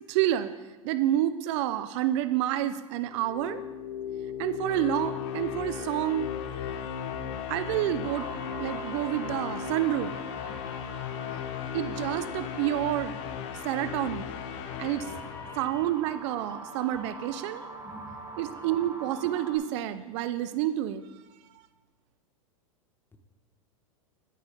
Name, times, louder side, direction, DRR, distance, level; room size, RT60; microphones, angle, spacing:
voice 1, 0.1-0.5 0.8-3.6 4.4-6.3 7.5-8.3 8.6-10.1 11.7-13.1 13.6-14.3 14.8-15.1 15.6-17.6 18.4-21.0, right 13 dB, 55° right, 12 dB, 0.6 m, -28 dB
sound 1, 3.0-16.2, left 8 dB, 55° left, 1.0 m, -36 dB
sound 2, 8.0-19.6, right 2 dB, 20° right, 3.8 m, -45 dB
voice 2, 15.0-15.8 17.6-18.1 18.6-18.7, left 3 dB, 10° left, 6 dB, 1.3 m, -46 dB
12.5 x 8.5 x 3.6 m, 1.2 s
hypercardioid pair, 105°, 18 cm